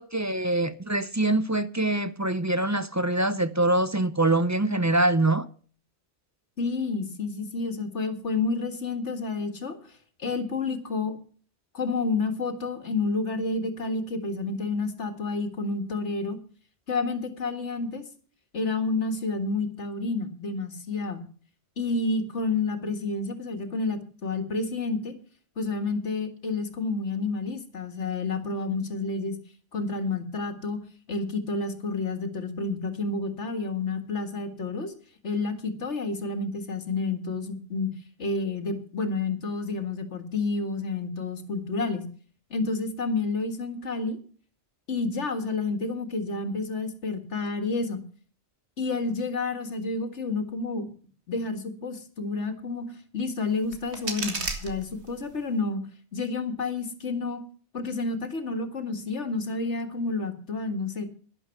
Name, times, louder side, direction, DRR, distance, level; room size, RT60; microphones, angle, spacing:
voice 1, 0.0-5.5, right 2 dB, 20° right, 0.5 m, -24 dB
voice 2, 6.6-9.8 10.2-11.2 11.7-16.4 16.9-18.0 18.5-21.2 21.8-25.1 25.6-29.4 29.7-30.8 31.1-34.9 35.2-37.9 38.2-42.1 42.5-44.2 44.9-48.0 48.8-50.9 51.3-55.8 56.1-57.4 57.7-61.1, left 3 dB, 90° left, 2.2 m, -30 dB
sound 1, 53.5-55.5, right 3 dB, 75° right, 2.4 m, -35 dB
11.5 x 11.0 x 5.8 m
omnidirectional pair, 1.2 m